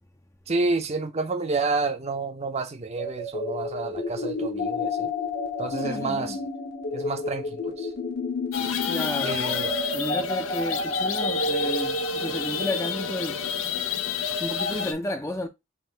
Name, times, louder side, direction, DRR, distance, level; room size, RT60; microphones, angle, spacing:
voice 1, 0.5-5.1 5.6-6.4 6.9-7.9 9.2-9.8, right 3 dB, 30° right, 0.6 m, -29 dB
sound 1, 3.0-14.8, left 2 dB, 55° left, 0.9 m, -31 dB
voice 2, 5.8-6.4 8.8-9.4 9.9-13.4 14.3-15.5, left 1 dB, 15° left, 0.4 m, -32 dB
sound 2, 8.5-14.9, left 8 dB, 80° left, 0.5 m, -30 dB
3.8 x 2.5 x 3.8 m
head